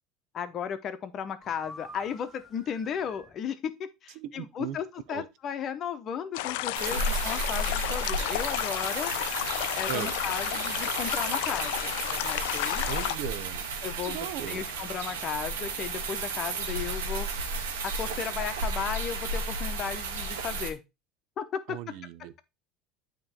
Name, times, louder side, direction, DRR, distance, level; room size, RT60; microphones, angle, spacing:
voice 1, 0.3-9.1 9.8-12.9 13.8-17.3 17.8-20.8 21.4-21.8, left 8 dB, 45° left, 0.8 m, -35 dB
sound 1, 1.4-3.4 9.0-11.7, left 1 dB, ahead, 1.1 m, -50 dB
voice 2, 4.2-4.8 5.1-5.3 6.9-7.0 9.9-10.1 12.8-13.6 14.1-14.6 21.7-22.4, right 11 dB, 70° right, 0.5 m, -37 dB
sound 2, 6.3-13.1, left 16 dB, 75° left, 0.3 m, -32 dB
sound 3, 6.7-20.7, right 3 dB, 90° right, 1.1 m, -33 dB
8.7 x 3.0 x 4.3 m
supercardioid pair, 95°, 0 cm